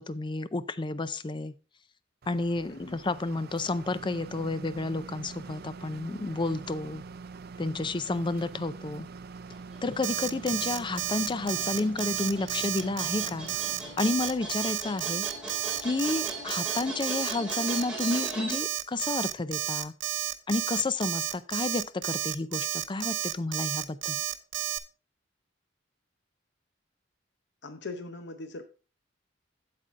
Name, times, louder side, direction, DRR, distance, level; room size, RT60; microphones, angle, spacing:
voice 1, 0.0-1.5 2.3-7.0 7.6-9.1 9.8-13.5 14.0-15.3 15.8-19.9 20.5-24.2, left 3 dB, 25° left, 15 dB, 0.5 m, -31 dB
sound 1, 2.2-16.9, right 4 dB, 55° right, 0.5 m, -45 dB
sound 2, 9.5-18.6, right 1 dB, 5° right, 2.9 m, -40 dB
Alarm, 10.0-24.8, right 12 dB, 90° right, 0.8 m, -31 dB
voice 2, 27.6-28.6, left 3 dB, 65° left, 9 dB, 0.8 m, -40 dB
8.4 x 7.7 x 3.6 m, 0.34 s
head